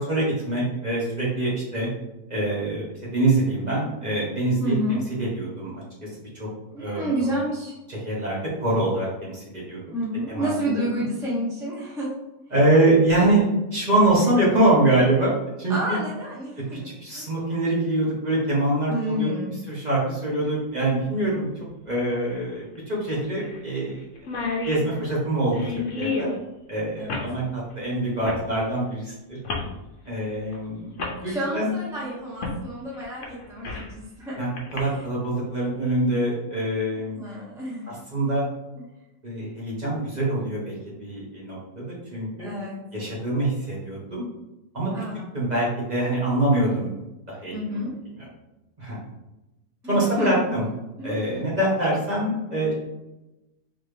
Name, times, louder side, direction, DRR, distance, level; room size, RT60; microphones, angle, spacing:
voice 1, 0.0-1.9 2.3-5.8 6.3-6.5 6.8-7.3 7.9-9.8 10.3-10.9 12.5-13.4 13.7-16.0 17.0-19.3 19.7-21.5 21.8-24.1 24.7-26.3 26.7-29.4 30.0-30.9 31.2-31.7 34.4-37.2 37.9-38.4 39.2-41.8 42.1-42.5 42.9-44.3 44.7-44.9 45.3-46.9 47.3-47.8 48.8-49.0 49.9-50.7 51.0-52.7, right 1 dB, 30° right, -6 dB, 1.2 m, -24 dB
voice 2, 4.6-5.0 6.7-7.7 9.9-12.1 15.7-16.9 17.1-17.3 18.9-19.5 27.0-27.2 31.2-34.4 34.8-35.0 37.2-38.0 38.7-38.8 42.4-42.8 44.9-45.1 47.5-47.9 49.8-50.5 51.0-51.3 52.1-52.2, equal, 5° right, -6 dB, 0.7 m, -29 dB
sound 1, 20.4-20.5 22.3-22.4 22.8-22.9 23.4-23.6 23.9-24.0 24.2-26.4 27.1-27.3 28.2-28.5 29.4-29.7 30.5-30.6 31.0-31.2 32.4-32.6 33.0-33.9 34.6-34.8, left 4 dB, 60° left, 1.0 m, -30 dB
4.1 x 3.1 x 3.3 m, 0.96 s
omnidirectional pair, 1.7 m